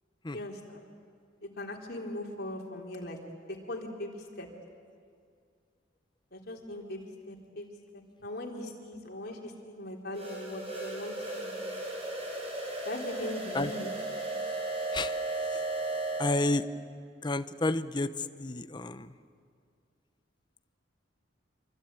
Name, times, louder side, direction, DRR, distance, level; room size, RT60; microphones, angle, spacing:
voice 1, 0.3-0.8 1.4-3.2 3.7-4.5 6.3-7.7 8.2-11.8 12.9-13.9, left 1 dB, 55° left, 0 dB, 3.8 m, -40 dB
sound 1, 10.1-16.4, right 2 dB, 30° right, 7.7 m, -35 dB
voice 2, 16.2-16.6 17.2-18.1 18.4-19.1, left 2 dB, 25° left, 11 dB, 0.8 m, -30 dB
26.5 x 24.5 x 9.1 m, 2.2 s
head